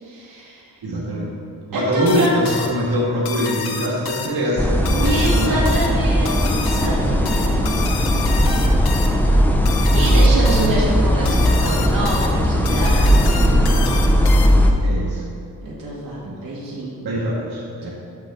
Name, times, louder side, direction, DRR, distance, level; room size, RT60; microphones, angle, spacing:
voice 1, 0.0-0.7 1.7-2.5 5.0-8.9 9.3-13.8 15.6-17.1 17.8-17.9, right 1 dB, 60° right, -7 dB, 1.8 m, -27 dB
voice 2, 0.8-1.3 1.7-5.5 14.8-15.2 16.2-16.3 17.0-17.9, equal, 80° right, -5 dB, 1.9 m, -23 dB
sound 1, 2.1-14.8, left 6 dB, 80° left, 0.7 m, -31 dB
sound 2, 4.6-14.7, equal, 5° left, 0.4 m, -17 dB
10.0 x 5.9 x 3.8 m, 2.6 s
wide cardioid pair, 160°, 37 cm